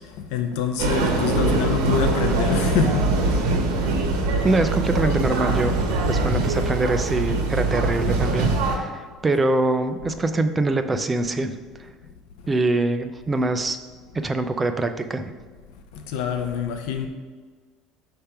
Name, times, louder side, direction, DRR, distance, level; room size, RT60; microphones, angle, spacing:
voice 1, 0.2-3.0 3.7-3.9 15.9-17.1, left 6 dB, 75° left, 6 dB, 0.5 m, -25 dB
sound 1, 0.8-8.8, right 2 dB, 90° right, 1.0 m, -22 dB
voice 2, 4.4-5.7 6.1-11.9 12.5-13.8 14.2-15.3, right 2 dB, 15° right, 8 dB, 0.3 m, -24 dB
5.6 x 3.4 x 5.7 m, 1.5 s
cardioid pair, 170°, 0 cm